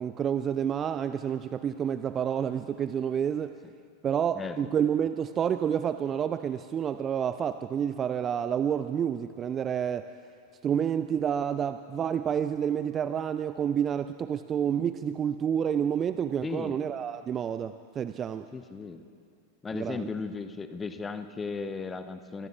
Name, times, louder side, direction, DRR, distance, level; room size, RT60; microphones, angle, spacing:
voice 1, 0.0-3.6 4.0-10.1 10.6-18.5 19.7-20.1, right 8 dB, 25° right, 12 dB, 0.4 m, -29 dB
voice 2, 4.4-4.7 16.4-16.8 18.5-19.0 19.6-22.5, left 4 dB, 15° left, 10 dB, 0.8 m, -36 dB
25.0 x 22.0 x 2.5 m, 2.3 s
figure-of-eight pair, 90°, 0 cm